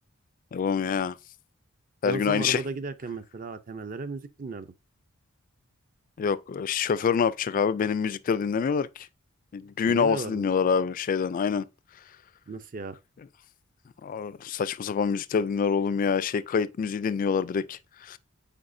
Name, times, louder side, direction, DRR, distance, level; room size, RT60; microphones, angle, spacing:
voice 1, 0.5-1.2 2.0-2.6 6.2-9.1 9.5-11.7 14.0-18.2, left 6 dB, 40° left, 0.3 m, -26 dB
voice 2, 2.0-4.7 9.9-10.4 12.5-13.0, right 3 dB, 40° right, 0.5 m, -35 dB
8.7 x 4.2 x 2.6 m
head